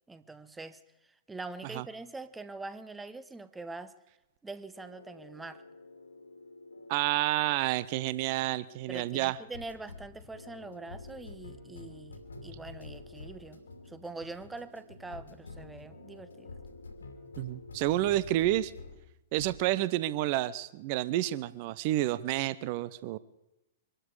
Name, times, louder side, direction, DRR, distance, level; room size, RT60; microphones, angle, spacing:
voice 1, 0.1-3.9 4.4-5.6 8.9-16.5, right 3 dB, 10° right, 13 dB, 0.9 m, -44 dB
sound 1, 4.7-19.0 19.3-19.7, left 3 dB, 75° left, 2.5 m, -49 dB
voice 2, 6.9-9.4 17.4-18.7 19.3-23.2, right 15 dB, 45° right, 17 dB, 0.7 m, -29 dB
24.0 x 12.5 x 4.8 m, 0.96 s
figure-of-eight pair, 105°, 0 cm